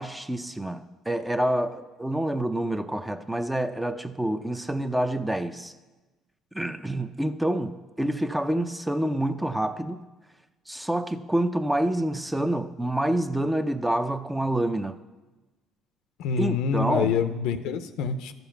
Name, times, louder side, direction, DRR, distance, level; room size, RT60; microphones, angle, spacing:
voice 1, 0.0-5.7 6.5-10.0 10.7-15.0 16.4-17.1, right 1 dB, 10° right, 9 dB, 0.6 m, -27 dB
voice 2, 16.2-18.3, left 6 dB, 80° left, 10 dB, 0.6 m, -26 dB
13.0 x 5.4 x 5.8 m, 1.2 s
supercardioid pair, 85°, 0 cm